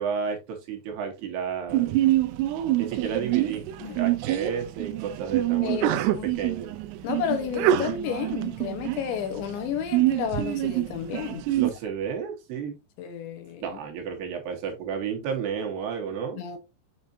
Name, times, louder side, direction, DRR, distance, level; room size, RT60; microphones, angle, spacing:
voice 1, 0.0-2.0 2.8-3.7 4.0-6.7 11.6-12.8 13.6-16.4, right 6 dB, 70° right, 3.0 m, -32 dB
Sneeze, 1.7-11.7, right 14 dB, 90° right, 2.4 m, -26 dB
voice 2, 5.6-6.3 7.0-11.5 13.0-13.8 16.3-16.6, left 8 dB, 75° left, 3.4 m, -32 dB
8.1 x 5.9 x 2.7 m
omnidirectional pair, 5.5 m